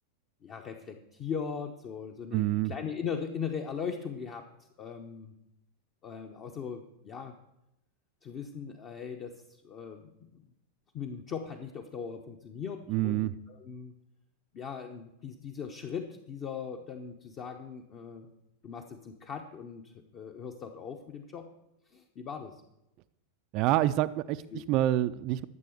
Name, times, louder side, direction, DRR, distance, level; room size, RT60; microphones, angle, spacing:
voice 1, 0.4-4.5 4.8-5.3 6.0-7.3 8.2-10.4 10.9-13.9 14.5-18.3 18.6-21.5 21.9-22.6 24.5-24.6, left 6 dB, 30° left, 4 dB, 1.0 m, -39 dB
voice 2, 2.3-2.7 12.9-13.3 23.5-25.4, right 14 dB, 40° right, 13 dB, 0.4 m, -27 dB
12.5 x 7.6 x 6.6 m, 0.87 s
figure-of-eight pair, 90°, 0 cm